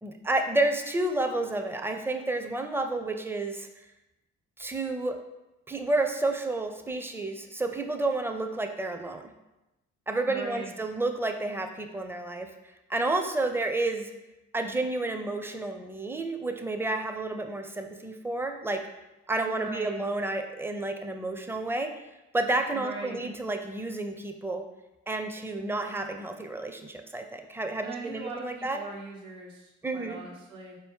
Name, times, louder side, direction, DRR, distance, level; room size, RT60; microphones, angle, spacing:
voice 1, 0.0-3.8 4.6-5.2 5.7-9.2 10.1-12.5 12.9-14.1 14.5-18.8 19.3-21.9 22.3-24.6 25.1-28.8 29.8-30.2, right 2 dB, 5° right, 5 dB, 0.4 m, -30 dB
voice 2, 10.3-10.7 19.4-20.0 22.7-23.3 27.8-30.8, right 3 dB, 80° right, -3 dB, 1.2 m, -40 dB
4.1 x 2.7 x 3.6 m, 0.98 s
supercardioid pair, 55°, 31 cm